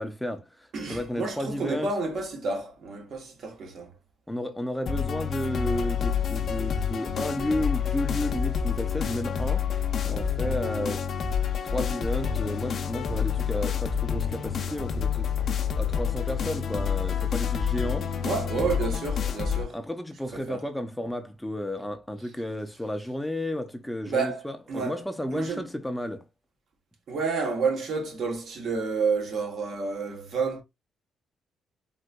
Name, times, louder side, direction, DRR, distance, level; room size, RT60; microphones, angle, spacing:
voice 1, 0.0-1.9 4.3-9.7 10.1-11.1 11.6-15.3 15.8-18.1 19.7-26.2, left 1 dB, 5° left, 0.5 m, -32 dB
voice 2, 0.7-3.9 18.2-19.8 20.3-20.6 24.1-25.0 25.3-25.7 27.1-30.6, right 4 dB, 65° right, 1.0 m, -30 dB
sound 1, 4.9-19.6, left 7 dB, 55° left, 0.6 m, -28 dB
3.8 x 2.5 x 2.2 m
cardioid pair, 90°, 0 cm